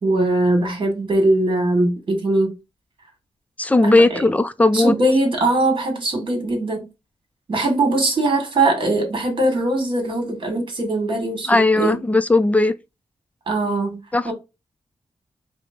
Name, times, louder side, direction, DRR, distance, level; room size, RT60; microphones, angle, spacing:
voice 1, 0.0-2.5 3.8-4.2 4.7-6.9 7.5-12.0 13.5-14.3, right 2 dB, 50° right, 1.5 m, -21 dB
voice 2, 3.6-4.9 11.5-12.7 14.1-14.3, left 2 dB, 15° left, 0.3 m, -17 dB
4.9 x 2.0 x 3.5 m
wide cardioid pair, 110°, 11 cm